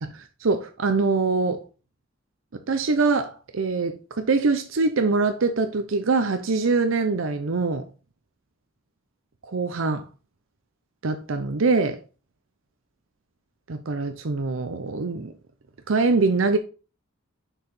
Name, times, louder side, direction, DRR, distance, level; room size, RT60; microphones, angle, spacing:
voice 1, 0.0-1.6 2.7-7.8 9.5-10.1 11.0-12.0 13.7-15.3 15.9-16.6, right 3 dB, 75° right, 0.7 m, -23 dB
6.6 x 4.7 x 5.4 m
head